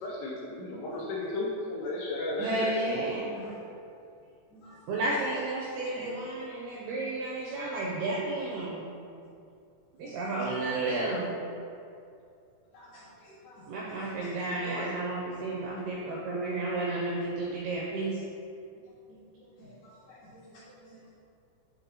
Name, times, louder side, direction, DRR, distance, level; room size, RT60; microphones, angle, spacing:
voice 1, 0.0-2.7 14.6-14.9, left 2 dB, 80° left, -4 dB, 2.4 m, -34 dB
voice 2, 2.4-3.5 4.9-8.9 10.0-11.4 13.7-18.2, right 2 dB, 90° right, -5 dB, 2.3 m, -32 dB
voice 3, 12.7-13.6 14.2-14.7 19.1-19.2 19.6-21.1, left 1 dB, 55° left, -10 dB, 2.2 m, -52 dB
10.0 x 3.7 x 2.9 m, 2.5 s
omnidirectional pair, 5.5 m